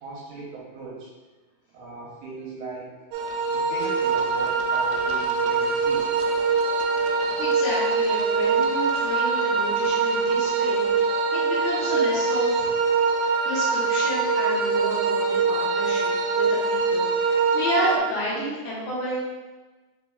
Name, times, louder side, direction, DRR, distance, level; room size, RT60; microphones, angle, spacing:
voice 1, 0.0-1.1 1.7-2.9 3.5-6.1, right 3 dB, 75° right, -4 dB, 2.0 m, -38 dB
sound 1, 3.1-18.0, right 4 dB, 90° right, 2.3 m, -23 dB
voice 2, 7.0-12.7 13.4-19.3, equal, 70° left, -7 dB, 2.3 m, -31 dB
4.5 x 4.4 x 2.3 m, 1.2 s
omnidirectional pair, 3.8 m